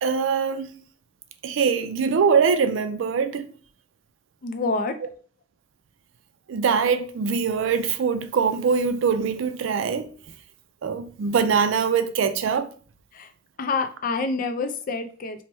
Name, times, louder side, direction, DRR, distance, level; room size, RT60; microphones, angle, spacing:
voice 1, 0.0-0.7 1.4-3.5 6.5-10.1 10.8-12.7, right 6 dB, 75° right, 0.3 m, -23 dB
voice 2, 4.4-5.0 13.1-13.3 13.6-15.4, left 3 dB, 45° left, 0.4 m, -27 dB
2.9 x 2.1 x 3.2 m
head